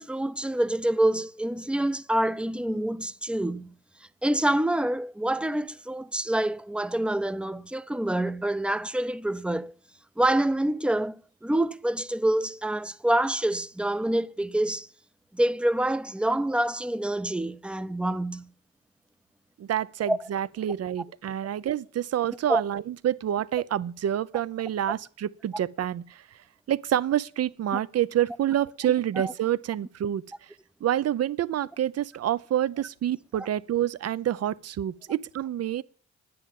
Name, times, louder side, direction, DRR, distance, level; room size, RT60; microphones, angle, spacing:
voice 1, 0.0-3.7 4.2-9.7 10.2-14.9 15.3-18.5 20.1-20.3 21.6-21.7 22.5-22.6 27.7-27.8 29.2-29.3 33.3-33.5, right 1 dB, 5° right, 0.6 m, -27 dB
voice 2, 19.6-26.2 26.7-30.2 30.8-35.8, right 11 dB, 55° right, 0.8 m, -27 dB
11.0 x 9.8 x 7.3 m
cardioid pair, 90°, 30 cm